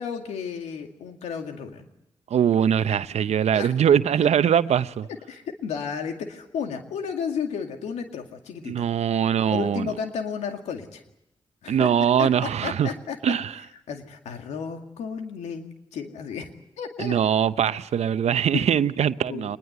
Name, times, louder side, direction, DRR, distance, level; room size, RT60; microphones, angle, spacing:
voice 1, 0.0-1.9 2.9-3.0 3.5-3.7 5.3-8.9 9.5-11.0 11.6-11.9 12.2-13.2 13.9-16.5 16.8-17.1 18.5-18.6 19.3-19.5, left 6 dB, 90° left, 2.2 m, -33 dB
voice 2, 2.3-5.1 8.7-9.9 11.7-12.9 13.2-13.6 17.0-19.6, right 8 dB, 75° right, 0.8 m, -22 dB
24.0 x 21.0 x 8.0 m
supercardioid pair, 40°, 11 cm